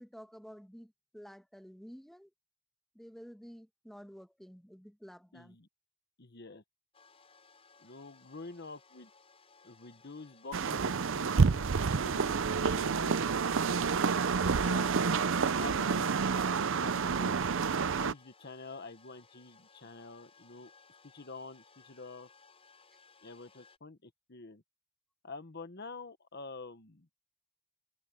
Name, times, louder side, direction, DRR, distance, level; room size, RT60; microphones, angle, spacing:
voice 1, 0.0-2.3 2.9-5.6, equal, ahead, 1.5 m, -51 dB
voice 2, 5.3-5.7 6.2-6.6 7.8-9.1 9.6-13.3 14.6-14.9 15.6-16.3 16.6-17.4 17.9-20.7 21.1-22.3 23.2-24.6 25.2-27.1, left 3 dB, 45° left, 1.1 m, -47 dB
sound 1, 6.9-23.8, left 4 dB, 25° left, 7.4 m, -62 dB
sound 2, 10.5-18.1, right 5 dB, 60° right, 0.6 m, -29 dB
head